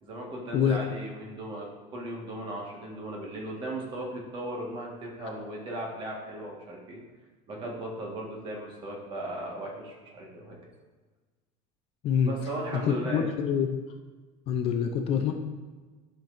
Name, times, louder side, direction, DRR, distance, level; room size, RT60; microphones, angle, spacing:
voice 1, 0.0-7.0 7.5-10.6 12.2-13.3, right 1 dB, 30° right, -1 dB, 1.6 m, -37 dB
voice 2, 12.7-13.8 14.5-15.3, left 8 dB, 40° left, 5 dB, 0.5 m, -26 dB
11.5 x 5.9 x 2.6 m, 1.3 s
cardioid pair, 170°, 16 cm